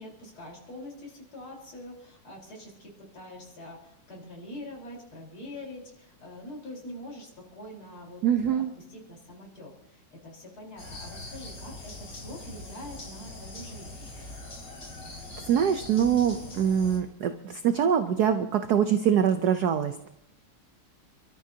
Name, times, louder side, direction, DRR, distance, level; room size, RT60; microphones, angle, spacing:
voice 1, 0.0-8.6 8.9-14.1, left 1 dB, 80° left, -2 dB, 5.2 m, -44 dB
voice 2, 8.2-8.7 15.5-20.1, right 8 dB, 65° right, 8 dB, 1.0 m, -24 dB
sound 1, 10.8-17.0, left 2 dB, 55° left, 4.0 m, -42 dB
29.0 x 13.0 x 2.8 m, 0.78 s
omnidirectional pair, 2.3 m